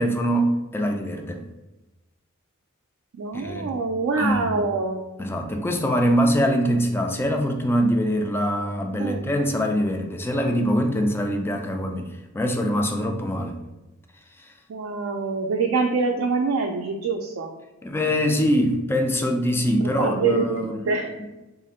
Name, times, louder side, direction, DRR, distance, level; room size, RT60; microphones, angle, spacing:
voice 1, 0.0-1.4 3.3-3.7 4.2-4.5 5.2-13.6 17.8-20.8, equal, 10° left, 4 dB, 0.3 m, -23 dB
voice 2, 3.1-5.0 9.0-9.2 14.7-17.5 19.8-21.1, right 4 dB, 65° right, 1 dB, 0.3 m, -25 dB
2.8 x 2.5 x 4.1 m, 1.0 s
head